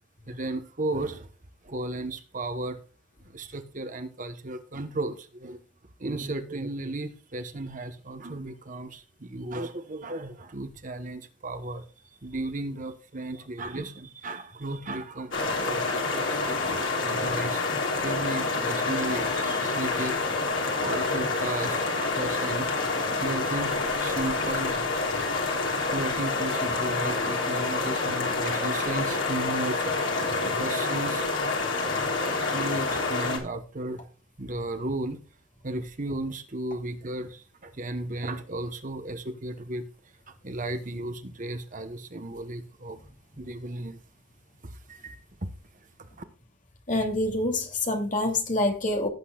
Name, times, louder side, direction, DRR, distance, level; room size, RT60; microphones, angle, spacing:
voice 1, 0.3-1.3 1.6-2.8 3.2-5.6 6.0-11.8 12.2-20.2 20.8-21.8 22.2-22.9 23.2-24.9 25.9-30.0 30.4-31.3 32.5-34.1 34.4-35.2 35.6-39.9 40.4-43.0 43.4-44.0 44.6-45.5 46.0-46.1, right 2 dB, 40° right, 1.1 m, -34 dB
sound 1, 15.3-33.4, left 3 dB, 70° left, 3.3 m, -28 dB
voice 2, 46.9-49.1, left 1 dB, 40° left, 2.8 m, -27 dB
17.0 x 8.4 x 2.4 m
head